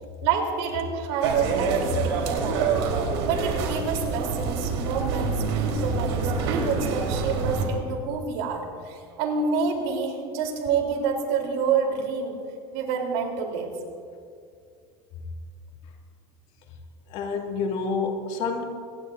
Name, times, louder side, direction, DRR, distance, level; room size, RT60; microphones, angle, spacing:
voice 1, 0.2-2.8 3.2-12.4 12.7-13.7, right 5 dB, 70° right, 2 dB, 3.8 m, -28 dB
sound 1, 1.2-7.7, right 4 dB, 90° right, 3.8 m, -26 dB
voice 2, 17.1-18.6, left 4 dB, 50° left, 1 dB, 2.6 m, -28 dB
25.5 x 20.0 x 2.7 m, 2.3 s
cardioid pair, 165°, 13 cm